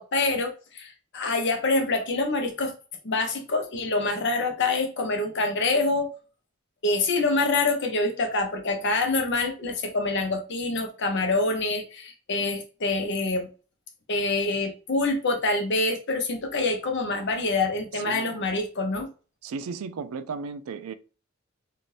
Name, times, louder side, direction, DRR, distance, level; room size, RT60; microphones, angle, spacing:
voice 1, 0.0-2.7 3.0-6.1 6.8-13.5 14.1-19.1, left 3 dB, 55° left, 0.8 m, -26 dB
voice 2, 17.9-18.4 19.4-20.9, right 5 dB, 85° right, 0.4 m, -35 dB
2.7 x 2.5 x 3.1 m
head